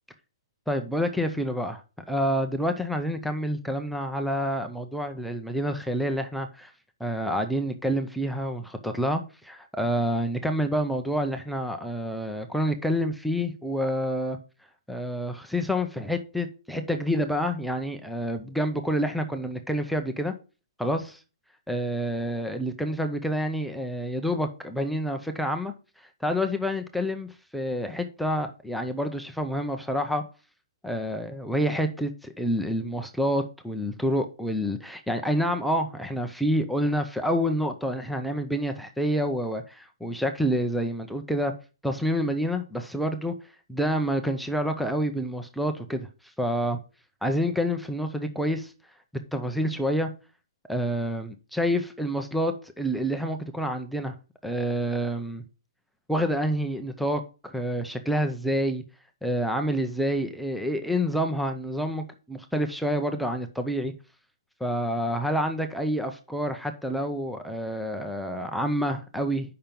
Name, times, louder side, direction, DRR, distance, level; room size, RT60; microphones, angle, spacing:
voice 1, 0.7-1.8 2.1-6.7 7.0-14.4 14.9-20.3 20.8-21.2 21.7-25.7 26.2-30.2 30.8-41.5 41.8-43.3 43.7-46.1 46.4-46.8 47.2-48.7 49.3-50.1 50.7-54.1 54.4-55.4 56.1-58.8 59.2-63.9 64.6-69.5, equal, ahead, 0.4 m, -28 dB
7.2 x 5.7 x 5.2 m
hypercardioid pair, 175°, 3 cm